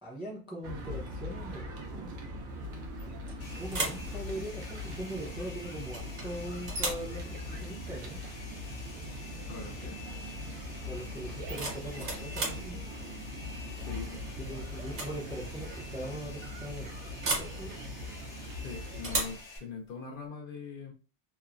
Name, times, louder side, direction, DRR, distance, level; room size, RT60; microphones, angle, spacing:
voice 1, 0.0-2.1 3.0-8.2 10.8-12.8 14.4-17.8, right 1 dB, 10° right, 0.3 m, -41 dB
sound 1, 0.6-19.2, left 1 dB, 90° right, 1.0 m, -41 dB
sound 2, 3.0-3.3 3.7-4.1 5.9-6.3 6.7-7.1 8.9-9.1 9.5-9.8 11.3-12.7 14.1-14.4 14.8-15.2 15.4-15.5 17.2-17.6 19.0-19.4, right 2 dB, 60° right, 1.0 m, -34 dB
Domestic sounds home sounds, 3.4-19.6, left 2 dB, 85° left, 1.2 m, -49 dB
voice 2, 9.5-10.0 13.8-14.2 18.6-20.9, left 5 dB, 60° left, 0.6 m, -42 dB
3.0 x 2.0 x 2.4 m
omnidirectional pair, 1.2 m